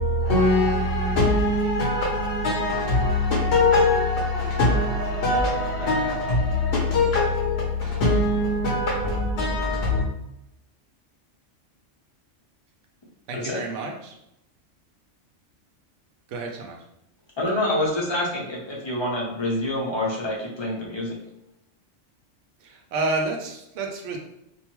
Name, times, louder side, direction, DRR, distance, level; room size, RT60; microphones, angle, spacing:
voice 1, 0.0-10.1, left 2 dB, 65° left, -3 dB, 0.8 m, -22 dB
voice 2, 13.3-14.2 16.3-16.8 22.6-24.2, right 3 dB, 80° right, 2 dB, 0.9 m, -30 dB
voice 3, 17.4-21.2, left 1 dB, 35° left, -3 dB, 0.5 m, -27 dB
2.6 x 2.2 x 2.9 m, 0.83 s
omnidirectional pair, 1.3 m